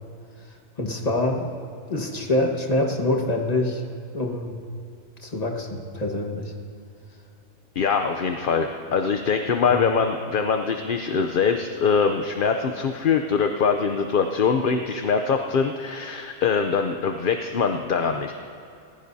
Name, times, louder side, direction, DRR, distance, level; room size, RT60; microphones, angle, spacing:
voice 1, 0.8-1.5 1.9-3.8 4.1-4.5 5.2-6.5 9.7-9.8, left 2 dB, 30° left, 1 dB, 1.5 m, -25 dB
voice 2, 7.8-18.3, left 5 dB, 50° left, 5 dB, 0.8 m, -23 dB
29.0 x 15.5 x 2.8 m, 2.6 s
omnidirectional pair, 1.3 m